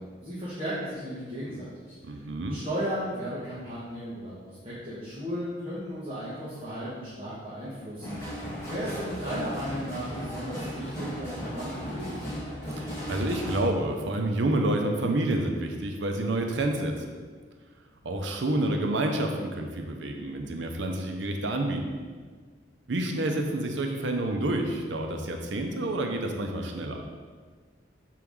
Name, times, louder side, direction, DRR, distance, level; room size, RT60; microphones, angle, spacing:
voice 1, 0.0-2.2 2.5-8.2 8.6-12.3, equal, 30° right, -10 dB, 1.4 m, -35 dB
voice 2, 2.1-2.6 12.8-16.9 18.0-21.9 22.9-27.0, right 1 dB, 75° right, 3 dB, 0.7 m, -28 dB
sound 1, 8.0-13.6, equal, 15° left, 1.6 m, -36 dB
6.8 x 4.6 x 3.6 m, 1.5 s
head